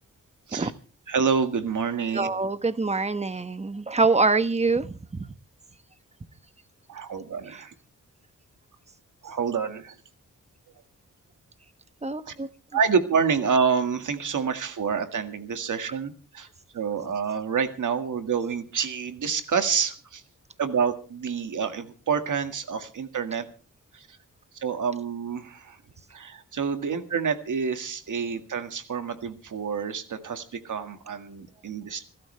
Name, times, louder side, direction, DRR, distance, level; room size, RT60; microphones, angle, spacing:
voice 1, 1.1-2.3 6.9-7.7 9.2-10.0 12.3-12.4 12.7-16.5 16.7-20.2 20.6-23.5 23.9-24.2 24.5-25.8 26.1-32.0, right 6 dB, 75° right, 1.9 m, -28 dB
voice 2, 2.1-5.3 12.0-12.5, right 3 dB, 20° right, 1.0 m, -25 dB
28.0 x 13.0 x 3.3 m
wide cardioid pair, 120°, 31 cm